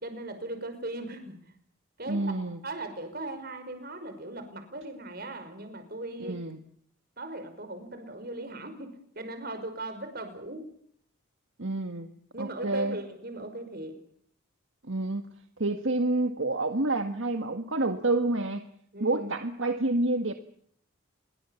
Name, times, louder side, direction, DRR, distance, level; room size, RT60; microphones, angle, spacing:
voice 1, 0.0-1.4 2.0-2.3 2.6-6.4 7.2-10.6 12.3-14.0 18.9-19.3, right 2 dB, 45° right, 8 dB, 5.4 m, -38 dB
voice 2, 2.1-2.6 6.2-6.6 11.6-13.0 14.9-15.2 15.6-18.6 19.0-20.3, right 2 dB, 65° right, 7 dB, 1.8 m, -28 dB
28.0 x 23.0 x 7.2 m, 0.65 s
head